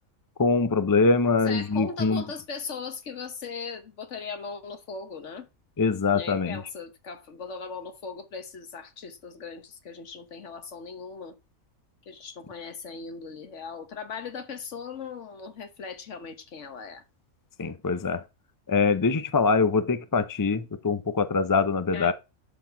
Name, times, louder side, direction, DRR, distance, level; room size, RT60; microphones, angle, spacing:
voice 1, 0.4-2.2 5.8-6.6 17.6-18.2 18.7-22.1, left 4 dB, 35° left, 0.3 m, -23 dB
voice 2, 1.4-5.5 6.1-11.3 12.1-17.0 21.9-22.1, left 5 dB, 60° left, 1.5 m, -38 dB
12.0 x 4.1 x 5.7 m
omnidirectional pair, 1.5 m